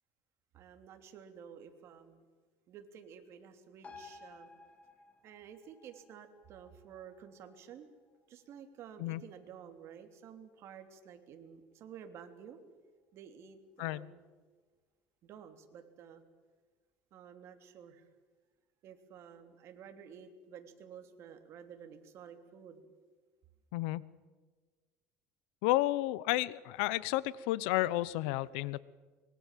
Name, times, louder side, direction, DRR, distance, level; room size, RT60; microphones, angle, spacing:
voice 1, 0.5-2.2 2.7-4.5 5.2-7.9 8.3-12.6 13.1-14.2 15.2-16.2 17.1-18.1 18.8-22.9, right 8 dB, 50° right, 6 dB, 3.0 m, -52 dB
sound 1, 3.8-10.8 11.1-11.2, left 4 dB, 20° left, 3.5 m, -58 dB
voice 2, 25.6-28.8, left 17 dB, 80° left, 20 dB, 0.9 m, -31 dB
25.0 x 22.5 x 7.5 m, 1.4 s
cardioid pair, 130°, 6 cm